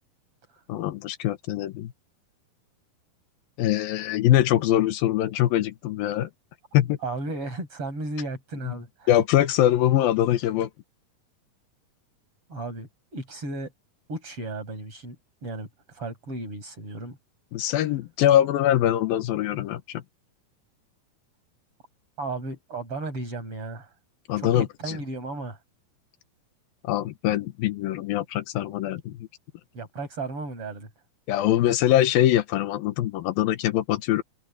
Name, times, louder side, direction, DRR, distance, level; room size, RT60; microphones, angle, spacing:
voice 1, 0.7-1.9 3.6-6.3 6.7-7.0 8.6-8.8 9.1-10.7 17.5-20.0 24.3-25.0 26.8-29.3 31.3-34.2, left 12 dB, 85° left, 2.9 m, -23 dB
voice 2, 7.0-9.1 12.5-13.7 14.1-17.2 22.2-23.9 24.4-25.6 29.7-30.9, right 2 dB, 40° right, 7.7 m, -34 dB
omnidirectional pair, 4.0 m